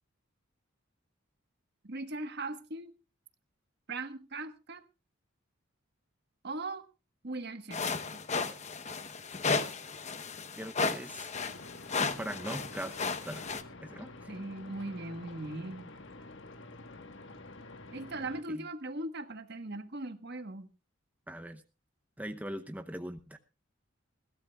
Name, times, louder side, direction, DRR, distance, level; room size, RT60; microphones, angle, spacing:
voice 1, 1.8-2.9 3.9-4.8 6.4-6.9 7.2-8.2 14.3-15.9 17.9-20.7, right 2 dB, 55° right, 9 dB, 1.4 m, -39 dB
sound 1, 7.7-13.6, left 4 dB, 35° left, 1.0 m, -34 dB
voice 2, 10.6-11.3 12.2-12.9 13.3-13.5 13.8-14.3 18.5-18.6 21.3-21.6 22.2-23.4, right 1 dB, 10° right, 7 dB, 0.8 m, -40 dB
sound 2, 11.3-18.4, left 2 dB, 60° left, 1.4 m, -49 dB
21.0 x 16.0 x 2.3 m, 0.32 s
head